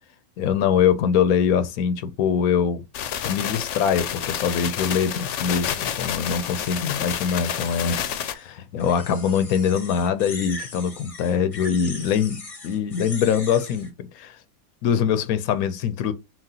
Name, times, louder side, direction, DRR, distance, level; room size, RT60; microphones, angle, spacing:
voice 1, 0.4-2.8 3.2-12.4 12.6-14.4 14.8-16.1, left 7 dB, 90° left, 1.1 m, -23 dB
sound 1, 2.9-8.3, left 9 dB, 65° left, 0.8 m, -29 dB
sound 2, 6.4-8.4 8.8-13.9, left 3 dB, 35° left, 0.7 m, -40 dB
5.9 x 2.4 x 2.7 m
omnidirectional pair, 1.5 m